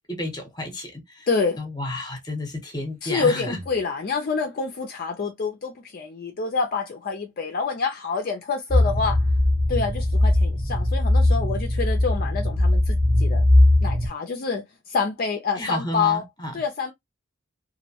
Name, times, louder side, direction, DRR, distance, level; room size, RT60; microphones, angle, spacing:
voice 1, 0.1-1.3 1.6-3.6 15.6-16.5, left 1 dB, 20° left, 0.8 m, -31 dB
voice 2, 1.3-1.6 3.0-9.3 9.7-13.4 13.8-16.2 16.5-16.9, left 5 dB, 45° left, 0.4 m, -27 dB
sound 1, 3.1-4.0, equal, 80° right, 0.8 m, -40 dB
sound 2, 8.7-14.1, left 1 dB, 15° right, 0.6 m, -20 dB
2.5 x 2.0 x 2.7 m
head